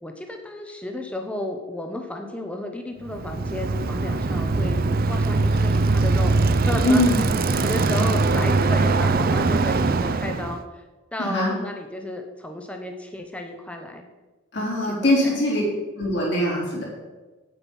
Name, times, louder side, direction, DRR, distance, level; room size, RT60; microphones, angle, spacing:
voice 1, 0.0-7.0 7.5-10.8 11.1-14.1 14.9-15.3, left 1 dB, 5° left, 4 dB, 0.8 m, -33 dB
Bicycle, 3.1-10.6, right 3 dB, 45° right, 0.5 m, -21 dB
voice 2, 6.8-7.2 11.2-11.6 14.5-15.6 16.0-16.8, left 1 dB, 55° left, -3 dB, 3.9 m, -22 dB
8.7 x 8.3 x 5.5 m, 1.2 s
head